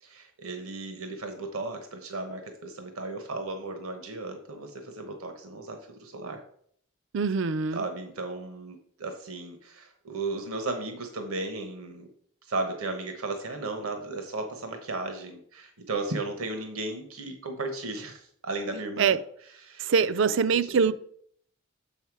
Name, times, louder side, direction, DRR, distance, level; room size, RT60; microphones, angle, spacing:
voice 1, 0.0-6.4 7.7-12.1 12.5-19.2 19.6-19.8 20.2-20.9, right 2 dB, 80° right, 1.1 m, -35 dB
voice 2, 7.1-7.8 19.0-19.2 19.8-20.9, right 5 dB, 60° right, 0.4 m, -24 dB
7.2 x 5.6 x 4.7 m
head